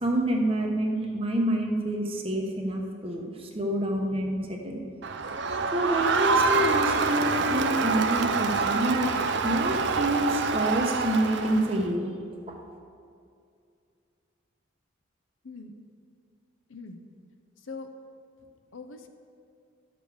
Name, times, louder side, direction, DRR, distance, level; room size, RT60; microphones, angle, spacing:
voice 1, 0.0-4.8 5.7-9.1 9.4-12.1 12.5-12.6, right 1 dB, 25° right, 1 dB, 1.0 m, -27 dB
Crowd, 5.0-11.8, right 4 dB, 55° right, 0.5 m, -26 dB
voice 2, 16.7-17.1 17.6-17.9 18.4-19.1, left 4 dB, 70° left, 7 dB, 0.7 m, -42 dB
11.5 x 6.9 x 4.9 m, 2.4 s
head